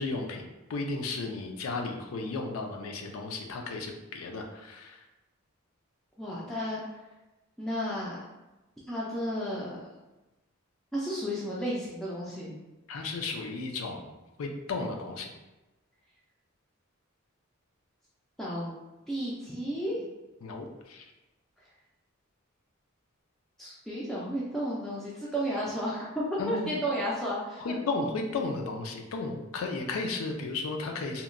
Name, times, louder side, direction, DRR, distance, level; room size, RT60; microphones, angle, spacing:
voice 1, 0.0-4.9 12.9-14.1 14.4-15.3 20.4-20.7 20.9-21.0 26.4-26.7 27.6-31.2, left 3 dB, 75° left, 3 dB, 0.4 m, -34 dB
voice 2, 6.2-6.8 7.6-8.2 8.9-9.7 10.9-12.6 18.4-18.7 19.1-20.0 23.6-27.8 28.1-28.2, equal, ahead, -7 dB, 0.3 m, -32 dB
2.8 x 2.1 x 2.4 m, 1.1 s
head